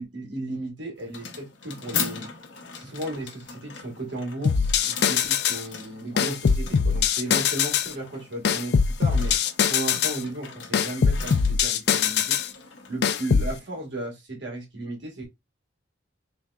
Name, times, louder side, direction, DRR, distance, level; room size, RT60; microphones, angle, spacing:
voice 1, 0.0-2.3 2.7-9.4 9.7-12.4 12.9-15.3, right 2 dB, 80° right, 1.8 m, -35 dB
sound 1, 1.0-14.1, left 6 dB, 75° left, 0.7 m, -39 dB
sound 2, 4.5-5.6 6.2-7.9 8.5-10.2 10.7-12.5 13.0-13.5, left 6 dB, 60° left, 0.4 m, -22 dB
3.7 x 3.3 x 2.3 m
head